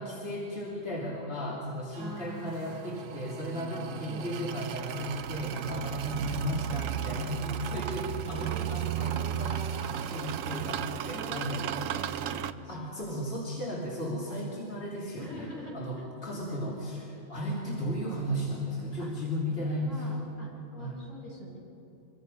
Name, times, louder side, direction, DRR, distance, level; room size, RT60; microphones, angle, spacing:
voice 1, 0.0-20.2 20.8-20.9, equal, 50° left, -5 dB, 3.2 m, -35 dB
sound 1, 1.9-12.5, right 10 dB, 85° right, 1.1 m, -35 dB
voice 2, 2.0-3.1 3.9-4.3 8.3-9.6 11.1-12.1 12.5-13.2 15.2-16.1 18.0-18.1 19.0-19.1 19.5-21.6, equal, 80° left, -4 dB, 6.8 m, -46 dB
26.0 x 23.5 x 5.4 m, 2.8 s
omnidirectional pair, 1.3 m